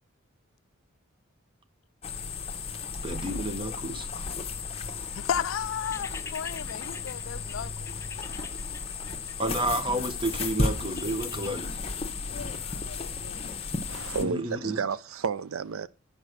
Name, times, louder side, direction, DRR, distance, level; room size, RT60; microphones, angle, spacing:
sound 1, 2.0-14.2, left 4 dB, 30° left, 0.9 m, -34 dB
voice 1, 3.0-4.1 9.4-11.8 14.2-14.8, right 1 dB, 25° right, 0.9 m, -31 dB
voice 2, 5.2-7.9 12.2-13.6 14.1-14.3, left 8 dB, 70° left, 0.4 m, -35 dB
sound 2, 5.8-10.0 10.9-11.6, left 4 dB, 15° left, 0.5 m, -46 dB
voice 3, 13.9-15.9, right 5 dB, 75° right, 0.5 m, -31 dB
9.3 x 5.4 x 6.4 m
head